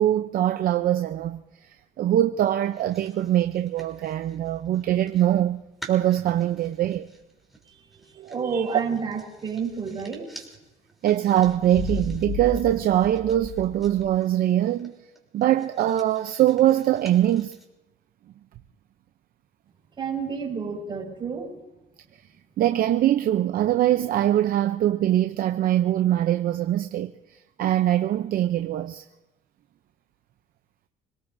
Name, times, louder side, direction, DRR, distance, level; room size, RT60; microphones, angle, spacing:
voice 1, 0.0-1.4 2.0-5.6 5.9-7.1 8.2-8.7 11.0-14.9 15.3-17.5 22.6-27.1 27.6-29.0, right 12 dB, 60° right, 0.6 m, -22 dB
sound 1, 2.6-5.4 5.8-17.7, right 1 dB, ahead, 3.5 m, -50 dB
voice 2, 7.7-10.3 20.0-21.6, right 5 dB, 30° right, 4.8 m, -30 dB
sound 2, 11.4-14.2, left 3 dB, 65° left, 5.2 m, -34 dB
27.0 x 18.5 x 2.7 m
cardioid pair, 110°, 17 cm